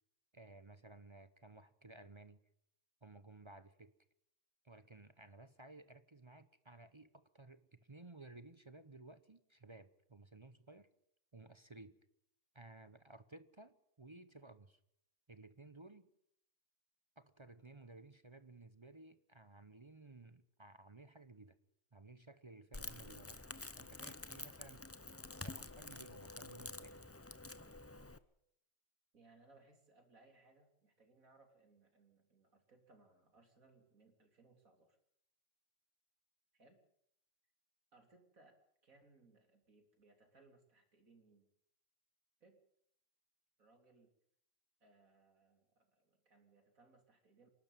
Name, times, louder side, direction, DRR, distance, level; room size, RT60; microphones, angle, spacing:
voice 1, 0.3-2.4 3.0-3.9 4.6-10.9 11.3-12.0 12.5-14.8 15.3-16.1 17.2-21.6 21.9-23.5 23.8-24.9 25.4-26.9, right 2 dB, 25° right, 12 dB, 0.8 m, -57 dB
Crackle, 22.7-28.2, left 2 dB, 15° left, 0.5 m, -49 dB
voice 2, 29.1-35.0 36.5-36.8 37.9-38.6 38.8-41.5 42.4-42.6 43.6-44.1 44.8-47.5, right 3 dB, 90° right, 4 dB, 3.8 m, -67 dB
27.5 x 12.5 x 9.1 m, 0.76 s
omnidirectional pair, 1.4 m